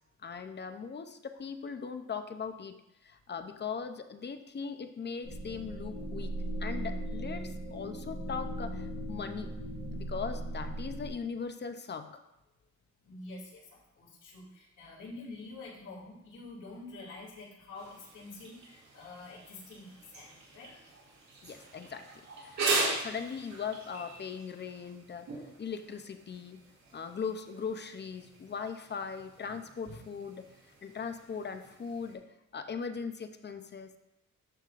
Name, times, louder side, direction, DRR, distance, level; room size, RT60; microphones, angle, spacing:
voice 1, 0.2-2.8 3.0-6.3 6.6-9.5 9.9-12.1 21.4-22.0 22.4-25.3 25.6-26.6 26.9-30.5 30.8-32.2 32.5-34.0, left 6 dB, 35° left, 8 dB, 0.6 m, -39 dB
sound 1, 5.2-11.1, right 1 dB, 20° left, 3.0 m, -38 dB
voice 2, 13.0-20.8 29.4-30.0, left 2 dB, 85° left, -4 dB, 2.7 m, -47 dB
sound 2, 17.7-32.1, right 3 dB, 70° right, 2.4 m, -40 dB
12.5 x 5.5 x 2.5 m, 0.88 s
cardioid pair, 110°, 30 cm